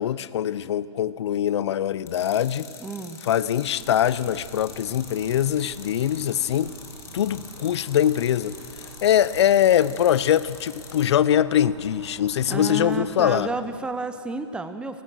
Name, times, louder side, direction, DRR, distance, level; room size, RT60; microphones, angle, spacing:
voice 1, 0.0-2.7 3.2-6.7 7.1-8.6 9.0-13.5, left 10 dB, 65° left, 18 dB, 0.8 m, -22 dB
sound 1, 2.1-11.1, left 6 dB, 20° left, 2.9 m, -44 dB
voice 2, 2.8-3.2 12.5-15.0, right 3 dB, 5° right, 10 dB, 0.9 m, -31 dB
sound 2, 3.6-13.8, right 5 dB, 70° right, 2.1 m, -46 dB
30.0 x 16.0 x 6.4 m, 2.6 s
hypercardioid pair, 130°, 15 cm